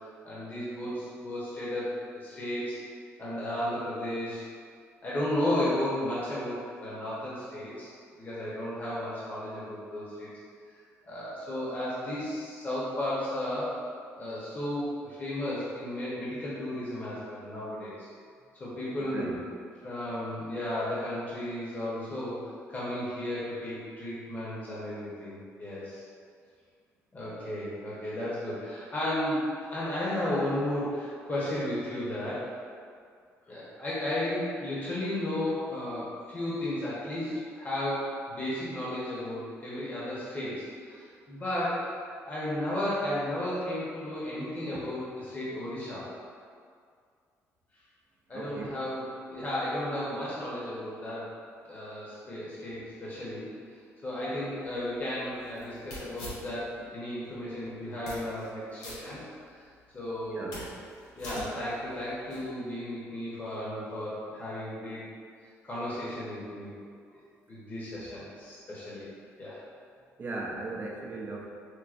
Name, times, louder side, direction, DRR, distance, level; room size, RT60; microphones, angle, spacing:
voice 1, 0.2-2.8 3.2-4.4 5.0-10.3 11.0-13.7 14.2-18.1 18.5-19.4 19.8-26.0 27.1-32.5 33.5-41.9 42.2-46.0 48.3-51.3 51.7-53.5 54.0-59.2 59.9-60.6 61.2-65.1 65.6-66.7 67.5-69.0 69.4-69.6, left 1 dB, 30° left, -8 dB, 0.9 m, -34 dB
voice 2, 19.0-19.4 48.3-48.8 60.3-60.7 68.7-68.8 70.2-71.4, right 3 dB, 35° right, -1 dB, 0.4 m, -38 dB
sound 1, 54.6-56.9 57.3-57.4 57.9-58.5 58.8-59.7 60.1-62.5, left 1 dB, 90° left, 0.8 m, -44 dB
4.6 x 2.2 x 2.4 m, 2.2 s
cardioid pair, 100°, 6 cm